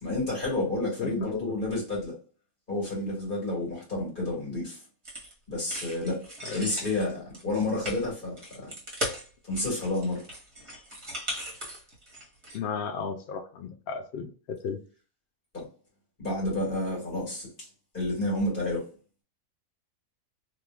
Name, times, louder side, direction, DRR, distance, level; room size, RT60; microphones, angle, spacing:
voice 1, 0.0-2.1 2.7-4.8 5.5-6.2 6.5-8.7 9.5-10.2 15.5-15.7 16.2-17.7 17.9-18.9, left 2 dB, 35° left, -5 dB, 1.7 m, -30 dB
voice 2, 1.0-1.5 6.4-6.6 12.5-14.8, left 6 dB, 85° left, 5 dB, 0.5 m, -34 dB
sound 1, 5.0-5.3 5.7-12.6, equal, 25° right, 0.8 m, -38 dB
3.0 x 2.5 x 2.4 m, 0.39 s
omnidirectional pair, 1.6 m